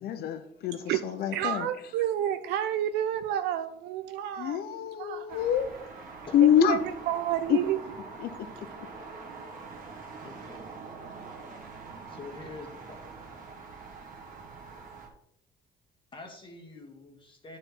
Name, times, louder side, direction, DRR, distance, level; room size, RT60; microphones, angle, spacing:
voice 1, 0.0-1.7 4.4-5.7 6.3-6.8 7.5-7.6 8.2-8.3, left 10 dB, 70° left, 0.7 m, -25 dB
voice 2, 1.3-5.4 6.6-6.8 7.1-7.8, right 11 dB, 80° right, 0.4 m, -30 dB
sound 1, 5.3-15.1, right 4 dB, 55° right, 1.7 m, -44 dB
voice 3, 10.2-10.6 12.1-13.2 16.1-17.6, left 3 dB, 30° left, 1.5 m, -46 dB
9.0 x 4.3 x 4.0 m
cardioid pair, 110°, 17 cm